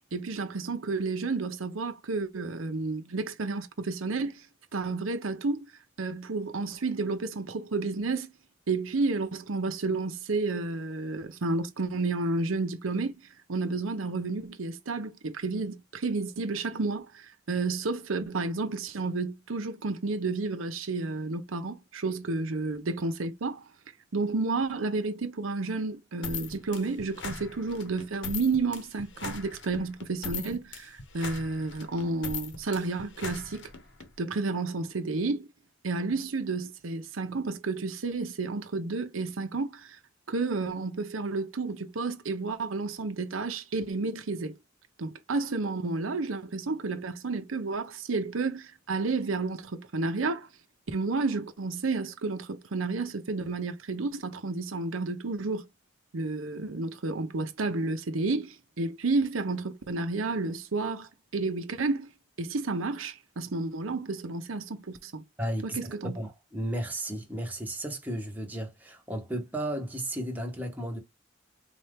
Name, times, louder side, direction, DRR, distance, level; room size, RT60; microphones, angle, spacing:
voice 1, 0.1-4.5 4.7-5.7 6.0-8.3 8.7-13.1 13.5-23.6 24.1-33.7 34.2-35.5 35.8-40.0 40.3-44.6 45.0-50.5 50.9-55.7 56.1-62.1 62.4-65.2 65.7-66.2, right 3 dB, 85° right, 0.7 m, -31 dB
sound 1, 26.2-34.1, left 5 dB, 60° left, 0.8 m, -40 dB
voice 2, 65.4-65.8 66.2-71.0, right 1 dB, 10° right, 0.9 m, -34 dB
4.3 x 2.4 x 3.4 m
head